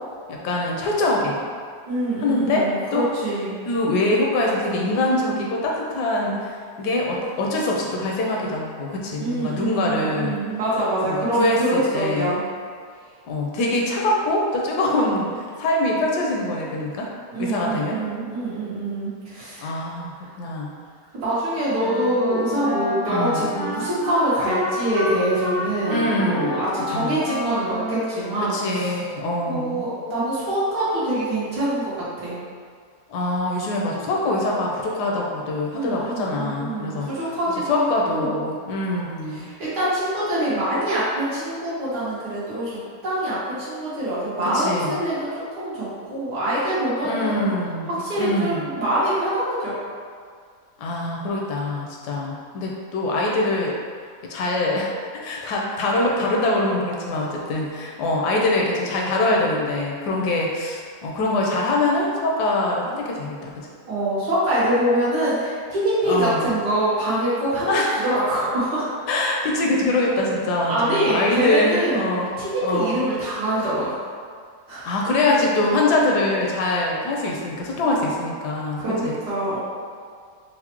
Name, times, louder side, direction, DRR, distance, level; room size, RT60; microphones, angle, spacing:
voice 1, 0.3-1.4 2.2-3.1 3.7-10.3 11.0-12.3 13.3-17.1 17.4-18.0 19.6-20.7 23.1-23.6 25.9-26.6 26.9-27.2 28.5-29.9 33.1-37.1 37.7-39.5 44.4-45.0 47.0-48.8 50.8-53.7 54.3-54.9 55.2-63.7 66.1-66.5 67.7-67.9 69.1-72.3 72.6-73.0 74.8-79.2, left 2 dB, 85° left, -2 dB, 1.2 m, -24 dB
voice 2, 1.9-3.6 9.2-12.4 17.3-19.8 20.2-20.3 21.2-28.9 29.5-32.3 35.7-38.4 39.3-47.5 47.9-49.7 63.9-68.9 70.7-72.1 72.4-74.0 74.7-75.1 78.8-79.6, right 1 dB, 90° right, -10 dB, 1.8 m, -25 dB
Wind instrument woodwind instrument, 21.7-29.1, left 1 dB, 70° right, 1.8 m, -29 dB
4.7 x 2.0 x 2.9 m, 2.1 s
omnidirectional pair, 1.7 m